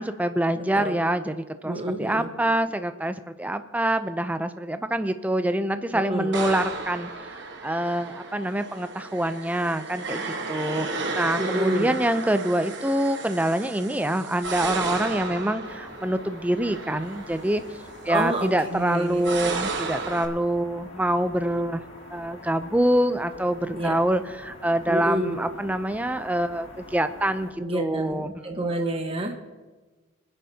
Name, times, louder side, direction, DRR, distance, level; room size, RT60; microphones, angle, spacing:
voice 1, 0.0-17.6 18.0-21.8 22.1-28.4, right 1 dB, 5° right, 10 dB, 0.5 m, -26 dB
voice 2, 0.5-1.0 1.6-2.3 5.9-6.3 11.4-12.0 18.1-19.2 23.7-23.9 24.9-25.4 27.6-29.3, right 1 dB, 25° right, 3 dB, 1.3 m, -28 dB
sound 1, 6.3-20.3, right 3 dB, 60° right, 1.3 m, -34 dB
sound 2, 15.6-27.5, left 1 dB, 65° left, 2.1 m, -45 dB
24.0 x 10.0 x 2.8 m, 1.3 s
head